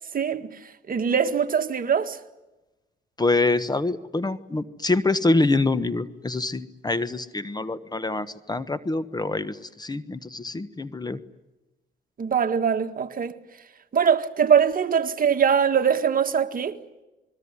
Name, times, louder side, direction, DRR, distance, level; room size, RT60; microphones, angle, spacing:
voice 1, 0.1-0.5 0.9-2.2 12.2-13.3 13.9-16.8, right 7 dB, 45° right, 1.8 m, -22 dB
voice 2, 3.2-11.2, left 2 dB, 20° left, 1.2 m, -25 dB
28.0 x 21.0 x 9.8 m
cardioid pair, 90°, 20 cm